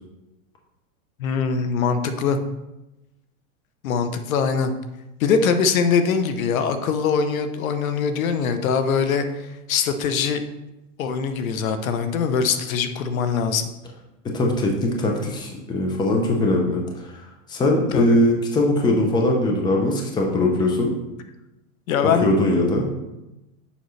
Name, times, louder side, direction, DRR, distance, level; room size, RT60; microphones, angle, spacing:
voice 1, 1.2-2.4 3.8-4.7 5.2-10.4 11.0-13.7 17.9-18.2 21.9-22.3, left 6 dB, 80° left, 9 dB, 0.9 m, -22 dB
voice 2, 14.3-17.1 17.5-20.9 22.2-22.8, left 1 dB, 10° left, 1 dB, 0.7 m, -21 dB
7.0 x 5.2 x 3.2 m, 0.97 s
supercardioid pair, 145°, 41 cm